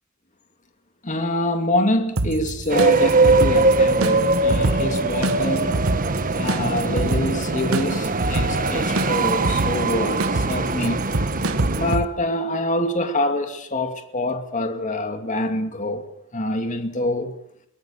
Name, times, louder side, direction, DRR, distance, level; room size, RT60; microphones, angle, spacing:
voice 1, 1.0-5.7 6.3-11.1 11.7-16.0 16.3-17.3, left 1 dB, 35° left, 2.4 m, -25 dB
sound 1, 2.2-12.0, right 2 dB, 85° right, 1.2 m, -27 dB
sound 2, 2.7-12.0, right 3 dB, 40° right, 1.5 m, -21 dB
23.5 x 18.0 x 7.2 m
head